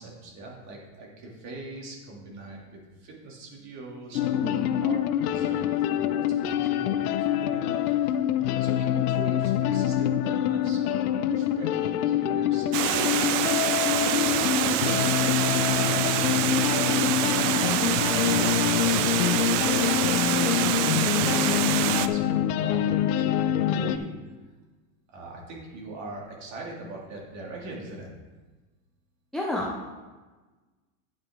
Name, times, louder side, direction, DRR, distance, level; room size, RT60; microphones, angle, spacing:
voice 1, 0.0-8.3 8.6-13.6 13.9-17.8 18.2-23.3 23.6-24.1 25.1-28.1, right 2 dB, 40° right, -2 dB, 2.8 m, -41 dB
sound 1, 4.1-24.0, left 11 dB, 80° left, 0.7 m, -25 dB
voice 2, 4.4-4.8 29.3-29.9, left 1 dB, ahead, -3 dB, 0.4 m, -31 dB
Water, 12.7-22.1, right 13 dB, 55° right, 0.6 m, -26 dB
9.5 x 9.0 x 3.7 m, 1.3 s
supercardioid pair, 150°, 44 cm